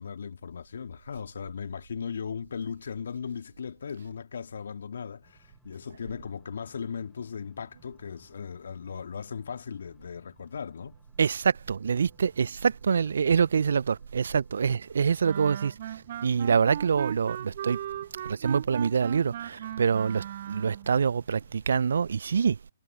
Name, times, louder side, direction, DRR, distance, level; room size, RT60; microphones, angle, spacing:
voice 1, 0.0-11.0, left 6 dB, 65° left, 2.3 m, -37 dB
sound 1, 5.2-21.9, equal, ahead, 4.7 m, -64 dB
voice 2, 11.2-17.8 18.2-22.6, right 6 dB, 65° right, 0.7 m, -26 dB
Wind instrument woodwind instrument, 15.2-20.9, right 11 dB, 50° right, 1.1 m, -37 dB
figure-of-eight pair, 125°, 0 cm